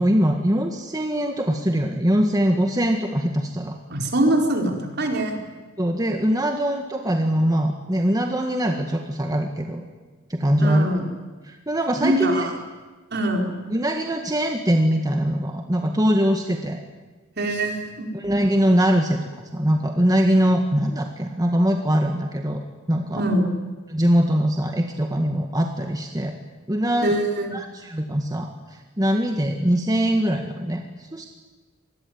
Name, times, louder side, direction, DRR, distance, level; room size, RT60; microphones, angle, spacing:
voice 1, 0.0-3.8 5.8-9.8 10.3-10.9 11.4-12.5 13.7-16.8 18.1-19.2 19.5-23.2 23.9-26.3 26.7-27.1 27.5-28.5 29.0-31.3, equal, 20° right, 3 dB, 1.8 m, -22 dB
voice 2, 3.9-5.4 10.6-11.0 12.0-12.5 13.1-13.6 17.4-18.1 23.2-23.5 27.0-27.5, right 1 dB, 55° right, 2 dB, 4.6 m, -23 dB
25.5 x 20.5 x 9.6 m, 1.3 s
head